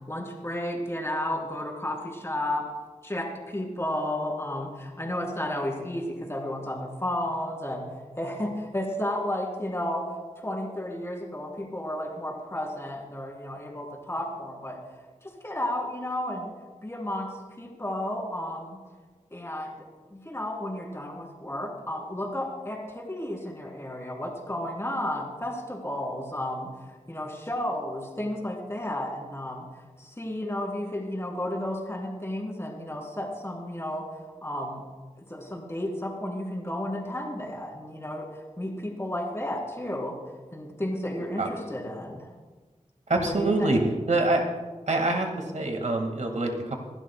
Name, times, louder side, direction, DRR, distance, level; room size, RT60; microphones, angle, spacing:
voice 1, 0.1-2.6 3.0-7.9 8.2-10.0 10.4-14.8 15.2-16.5 16.8-18.8 19.3-19.9 20.1-29.7 30.0-34.1 34.4-34.8 35.2-40.2 40.5-42.3 43.3-43.8, left 1 dB, 20° left, -1 dB, 3.5 m, -32 dB
voice 2, 43.1-43.8 44.1-44.4 44.9-46.7, right 2 dB, 70° right, 3 dB, 2.0 m, -25 dB
27.0 x 11.5 x 2.3 m, 1.3 s
wide cardioid pair, 65°, 13 cm